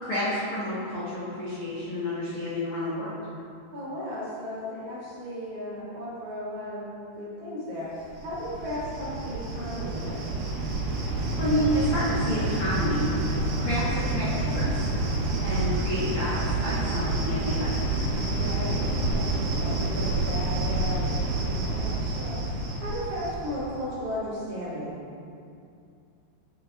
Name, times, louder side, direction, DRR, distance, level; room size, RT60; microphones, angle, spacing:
voice 1, 0.0-3.1 11.3-13.1 13.5-14.9 15.4-18.0, equal, 80° left, -10 dB, 1.2 m, -30 dB
voice 2, 3.7-6.9 7.2-10.3 15.4-15.7 18.3-25.0, equal, 45° right, -10 dB, 2.3 m, -36 dB
Cricket, 8.0-23.7, right 2 dB, 70° right, 3.0 m, -28 dB
9.1 x 7.2 x 3.7 m, 2.5 s
omnidirectional pair, 5.1 m